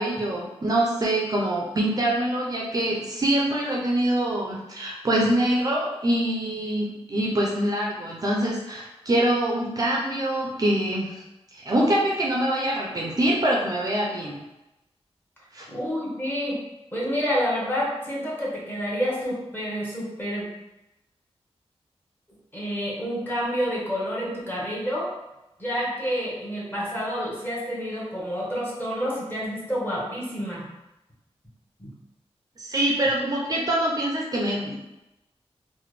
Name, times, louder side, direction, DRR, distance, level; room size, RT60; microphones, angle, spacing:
voice 1, 0.0-11.2 11.5-14.4 15.5-15.7 32.6-34.8, right 1 dB, 35° right, -3 dB, 0.4 m, -24 dB
voice 2, 15.7-16.6 16.9-20.5 22.5-25.1 25.6-30.6 31.8-31.9, equal, 20° left, -5 dB, 1.0 m, -28 dB
3.2 x 2.1 x 3.1 m, 0.95 s
wide cardioid pair, 125°, 11 cm